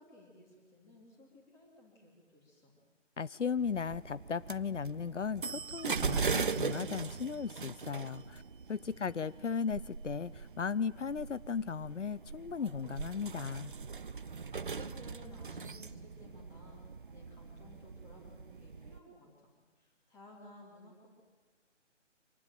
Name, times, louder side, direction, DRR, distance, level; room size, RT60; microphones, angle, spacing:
voice 1, 0.0-2.7 8.9-9.1 14.3-16.8 17.1-21.1, left 1 dB, 5° left, -1 dB, 3.3 m, -57 dB
voice 2, 3.2-8.4 8.7-13.7, left 6 dB, 75° left, 18 dB, 0.7 m, -36 dB
sound 1, 3.6-19.0, right 5 dB, 45° right, 0.7 m, -40 dB
25.5 x 19.5 x 9.1 m, 1.4 s
figure-of-eight pair, 160°, 37 cm